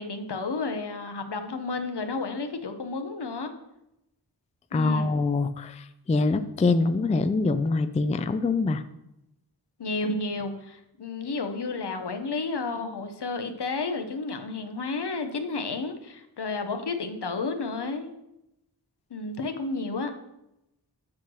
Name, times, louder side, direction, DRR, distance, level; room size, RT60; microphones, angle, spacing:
voice 1, 0.0-3.5 4.7-5.1 9.8-18.1 19.1-20.1, left 3 dB, 70° left, 6 dB, 0.9 m, -31 dB
voice 2, 4.7-8.8, left 3 dB, 20° left, 10 dB, 0.3 m, -24 dB
8.4 x 3.1 x 6.1 m, 0.87 s
wide cardioid pair, 60°, 42 cm